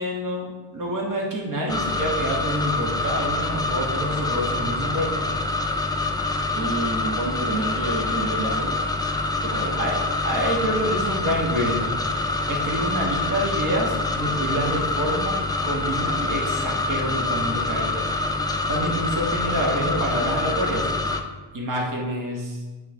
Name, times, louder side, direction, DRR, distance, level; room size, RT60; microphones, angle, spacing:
voice 1, 0.0-5.1 9.8-10.0 10.2-11.9 12.5-15.4 15.6-18.0 18.7-20.9 21.5-22.6, equal, 40° right, -2 dB, 1.4 m, -27 dB
sound 1, 1.7-21.2, left 2 dB, 10° left, 0.4 m, -26 dB
voice 2, 6.5-8.7 9.4-9.8, right 2 dB, 65° right, -3 dB, 1.3 m, -29 dB
8.6 x 3.3 x 3.5 m, 1.3 s
cardioid pair, 90°, 47 cm